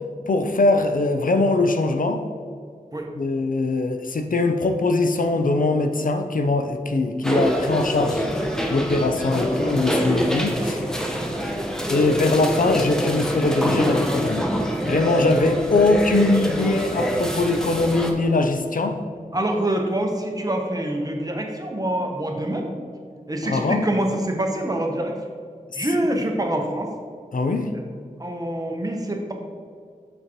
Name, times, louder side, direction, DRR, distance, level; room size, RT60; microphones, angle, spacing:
voice 1, 0.3-2.2 3.1-8.3 8.7-10.8 11.9-19.0 23.4-23.8 25.7-25.9 27.3-27.7, left 2 dB, 70° left, 6 dB, 0.5 m, -22 dB
sound 1, 7.2-18.1, equal, 5° left, 0.7 m, -25 dB
voice 2, 11.0-11.5 15.5-15.6 19.3-22.7 23.3-25.1 25.8-26.9 28.2-29.3, right 1 dB, 25° right, 1 dB, 0.9 m, -26 dB
6.4 x 6.1 x 3.0 m, 2.2 s
wide cardioid pair, 75°, 14 cm